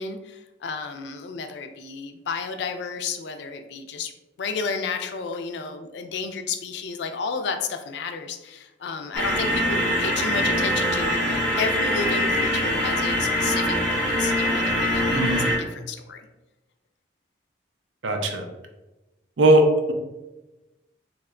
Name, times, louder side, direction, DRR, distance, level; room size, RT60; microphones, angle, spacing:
voice 1, 0.0-4.1 4.4-16.3, left 5 dB, 65° left, 6 dB, 0.3 m, -32 dB
sound 1, 9.1-15.6, left 1 dB, 5° left, 0.5 m, -23 dB
voice 2, 15.1-15.4 18.0-18.5 19.4-19.9, right 1 dB, 80° right, 4 dB, 0.5 m, -19 dB
2.9 x 2.2 x 3.6 m, 1.1 s
head